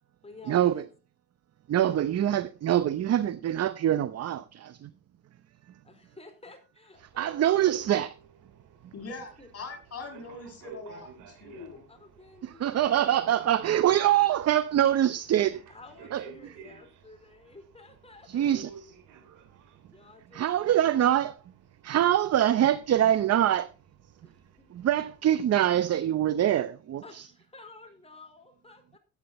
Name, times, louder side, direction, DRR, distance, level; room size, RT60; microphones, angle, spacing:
voice 1, 0.2-0.8 1.8-2.0 5.8-7.7 9.4-9.5 11.9-12.9 13.7-14.0 15.7-18.7 19.9-20.8 24.2-24.7 27.0-29.0, left 3 dB, 20° left, 4.3 m, -51 dB
voice 2, 1.7-4.9 7.2-8.1 12.4-15.6 16.1-16.2 18.3-18.9 20.3-21.3 21.8-23.7 24.7-27.2, right 11 dB, 55° right, 0.7 m, -24 dB
sound 1, 6.9-25.5, right 6 dB, 85° right, 2.8 m, -53 dB
voice 3, 8.9-11.9, left 3 dB, 50° left, 7.3 m, -42 dB
13.5 x 9.1 x 4.2 m
cardioid pair, 90°, 30 cm